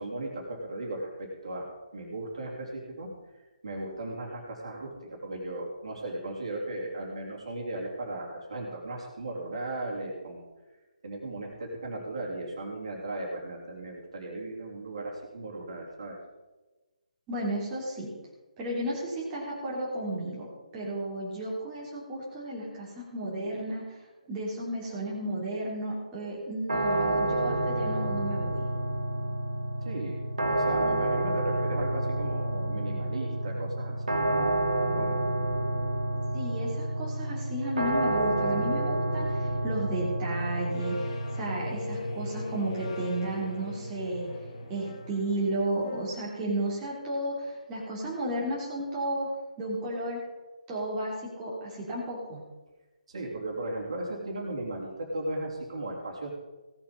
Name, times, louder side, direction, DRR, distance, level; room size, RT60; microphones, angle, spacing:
voice 1, 0.0-3.1 3.6-10.4 11.0-16.2 29.8-34.5 34.8-35.2 53.1-56.3, right 2 dB, 50° right, -2 dB, 3.3 m, -36 dB
voice 2, 17.3-18.1 18.6-20.5 20.7-24.0 24.3-28.7 36.3-44.3 44.7-49.3 49.6-50.2 50.7-52.4, right 1 dB, 15° right, -6 dB, 3.0 m, -33 dB
sound 1, 26.7-45.6, right 1 dB, 65° right, 1.8 m, -30 dB
sound 2, 40.3-46.1, left 3 dB, 45° left, 2.4 m, -41 dB
17.0 x 7.3 x 5.4 m, 1.2 s
figure-of-eight pair, 140°, 4 cm